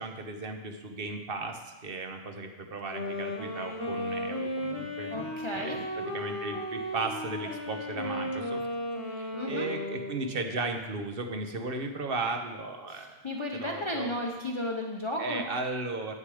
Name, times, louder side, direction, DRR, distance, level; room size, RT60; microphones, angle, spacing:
voice 1, 0.0-8.6 9.1-13.2 13.5-14.3 15.2-16.1, right 3 dB, 55° right, 5 dB, 1.2 m, -36 dB
Wind instrument woodwind instrument, 2.8-10.5, left 1 dB, 65° left, 1.7 m, -35 dB
voice 2, 5.1-5.8 9.3-9.7 12.9-15.4, left 1 dB, 30° left, 0 dB, 0.8 m, -34 dB
9.5 x 8.4 x 4.9 m, 1.1 s
omnidirectional pair, 1.2 m